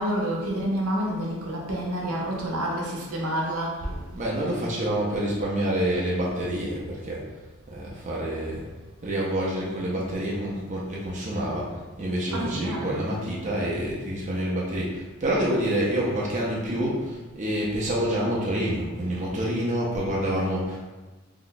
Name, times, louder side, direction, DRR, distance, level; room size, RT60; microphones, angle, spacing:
voice 1, 0.0-4.6 12.3-13.2, equal, 80° right, -2 dB, 0.8 m, -29 dB
voice 2, 4.1-7.3 7.7-8.6 9.0-20.8, right 1 dB, 35° right, -5 dB, 0.5 m, -27 dB
2.8 x 2.2 x 3.9 m, 1.2 s
head